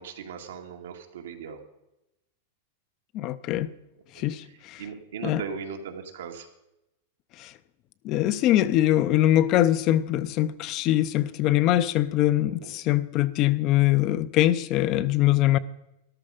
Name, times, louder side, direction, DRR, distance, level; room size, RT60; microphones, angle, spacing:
voice 1, 0.0-1.6 4.1-6.5 12.6-12.7, right 6 dB, 85° right, 2.1 m, -38 dB
voice 2, 3.1-3.7 4.2-4.8 5.2-5.4 7.4-7.5 8.0-15.6, left 14 dB, 35° left, 0.5 m, -23 dB
13.5 x 12.0 x 5.0 m
supercardioid pair, 155°, 0 cm